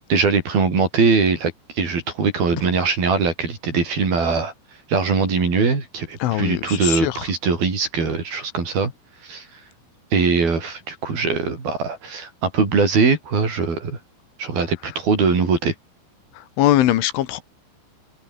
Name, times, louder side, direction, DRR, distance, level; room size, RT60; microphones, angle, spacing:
voice 1, 0.1-4.5 4.9-8.9 9.2-9.5 10.1-14.0 14.4-15.7, right 4 dB, 50° right, 7.7 m, -21 dB
voice 2, 6.2-7.2 16.6-17.4, left 13 dB, 85° left, 4.1 m, -20 dB
omnidirectional pair, 5.4 m